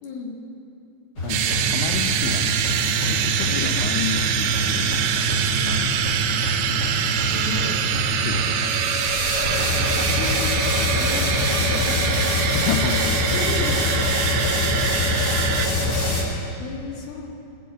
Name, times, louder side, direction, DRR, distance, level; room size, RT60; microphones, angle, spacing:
voice 1, 0.0-0.4 3.5-3.7 5.5-5.8 6.9-7.9 8.4-9.3 9.9-12.6 13.3-15.0 16.0-17.3, left 3 dB, 60° left, -2 dB, 2.9 m, -35 dB
voice 2, 1.2-6.4 8.1-9.5 10.8-11.0 12.5-13.8, left 9 dB, 85° left, 4 dB, 2.3 m, -33 dB
sound 1, 1.2-16.2, left 1 dB, 30° left, 2.3 m, -25 dB
sound 2, 1.3-15.7, right 9 dB, 85° right, 2.4 m, -25 dB
18.0 x 6.2 x 8.1 m, 2.6 s
omnidirectional pair, 4.1 m